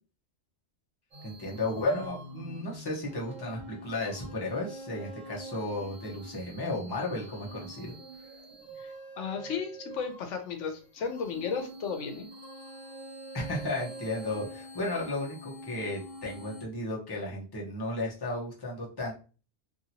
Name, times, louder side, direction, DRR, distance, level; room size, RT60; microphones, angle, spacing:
sound 1, 1.1-16.6, right 1 dB, 30° right, 1.4 m, -46 dB
voice 1, 1.2-7.9 13.3-19.1, left 2 dB, 25° left, -3 dB, 0.8 m, -34 dB
voice 2, 8.8-12.3, left 6 dB, 85° left, 6 dB, 1.0 m, -34 dB
2.8 x 2.7 x 2.7 m, 0.35 s
omnidirectional pair, 1.2 m